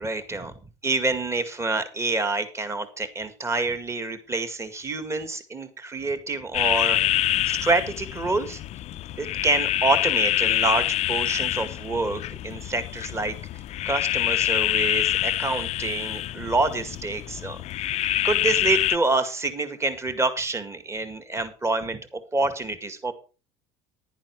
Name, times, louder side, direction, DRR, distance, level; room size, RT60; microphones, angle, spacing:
voice 1, 0.0-0.5 0.8-7.0 7.5-8.6 9.2-13.3 13.9-17.6 18.2-23.1, right 3 dB, 20° right, 10 dB, 1.9 m, -27 dB
sound 1, 6.5-19.0, left 14 dB, 45° left, 0.5 m, -26 dB
11.0 x 10.5 x 4.7 m, 0.33 s
supercardioid pair, 110°, 15 cm